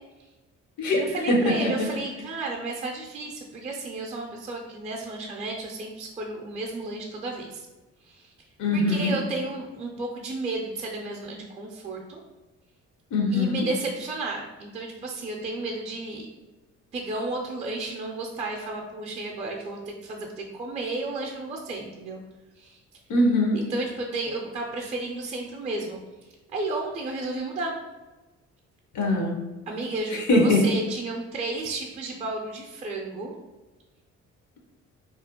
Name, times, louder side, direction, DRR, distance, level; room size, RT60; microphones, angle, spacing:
voice 1, 1.0-7.7 8.0-8.3 8.7-12.2 13.3-16.3 16.9-22.2 22.6-22.8 23.6-26.0 26.5-27.8 29.7-33.3, right 2 dB, 25° right, 0 dB, 0.4 m, -32 dB
voice 2, 8.6-9.1 13.1-13.6 23.1-23.6 28.9-29.4 30.1-30.6, left 2 dB, 75° left, 1 dB, 0.7 m, -22 dB
2.4 x 2.0 x 2.8 m, 1.1 s
cardioid pair, 90°, 30 cm